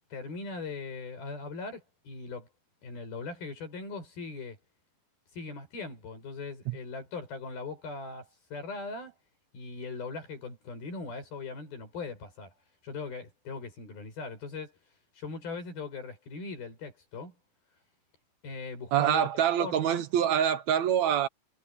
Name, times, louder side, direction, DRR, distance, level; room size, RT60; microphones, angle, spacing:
voice 1, 0.1-2.5 2.8-4.6 5.3-9.1 9.5-12.5 12.8-14.7 15.2-17.4 18.4-20.0, left 4 dB, 90° left, 9.3 m, -40 dB
voice 2, 18.9-21.3, right 9 dB, 70° right, 1.8 m, -25 dB
omnidirectional pair, 4.2 m